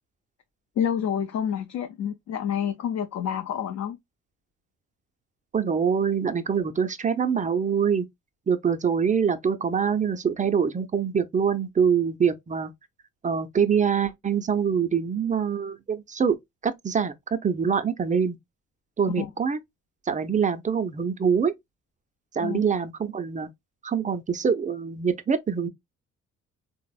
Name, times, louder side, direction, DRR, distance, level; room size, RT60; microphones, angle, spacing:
voice 1, 0.8-4.0 19.2-19.3 22.4-22.6, left 8 dB, 60° left, 0.4 m, -28 dB
voice 2, 5.5-8.1 8.5-12.7 13.2-16.4 16.6-17.1 17.4-18.4 19.0-19.6 20.1-21.5 22.3-23.5 23.8-25.7, right 6 dB, 25° right, 0.4 m, -24 dB
3.3 x 2.0 x 2.3 m
cardioid pair, 90°, 30 cm